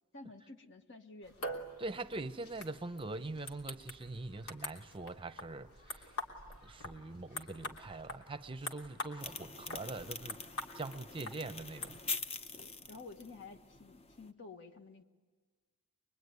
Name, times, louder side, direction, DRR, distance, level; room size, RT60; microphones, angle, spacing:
voice 1, 0.1-1.7 12.6-15.0, left 3 dB, 60° left, 6 dB, 1.7 m, -52 dB
sound 1, 1.2-12.0, left 1 dB, 90° left, 3.1 m, -46 dB
voice 2, 1.8-6.1 6.6-10.4 10.7-12.0, right 2 dB, 25° right, 10 dB, 0.8 m, -43 dB
sound 2, 9.2-14.3, left 4 dB, 30° left, 0.8 m, -44 dB
24.0 x 23.0 x 9.6 m, 1.4 s
head